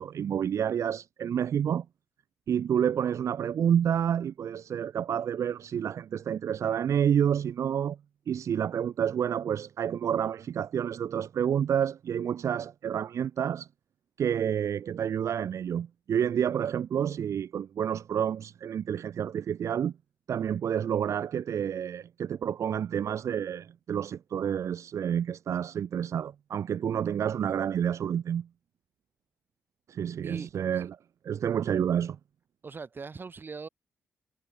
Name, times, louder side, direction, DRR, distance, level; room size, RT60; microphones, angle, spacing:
voice 1, 0.0-1.9 2.5-8.0 8.3-13.7 14.2-19.9 20.3-28.5 29.9-31.0 31.2-32.2, right 8 dB, 65° right, 0.5 m, -29 dB
voice 2, 30.2-30.8 32.6-33.7, right 4 dB, 40° right, 5.9 m, -41 dB
cardioid pair, 95°, 6 cm